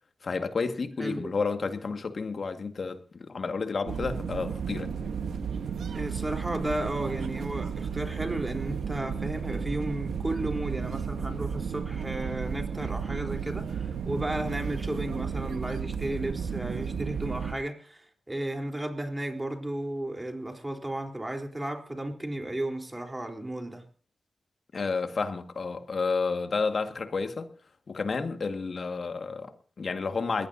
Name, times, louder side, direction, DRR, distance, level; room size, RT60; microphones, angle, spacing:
voice 1, 0.2-4.9 24.7-27.5 27.9-30.5, left 4 dB, 65° left, 1.9 m, -31 dB
voice 2, 1.0-1.3 5.9-23.9, right 1 dB, 20° right, 3.8 m, -34 dB
sound 1, 3.9-17.5, right 6 dB, 90° right, 1.2 m, -33 dB
21.5 x 16.0 x 2.8 m
cardioid pair, 50°, 0 cm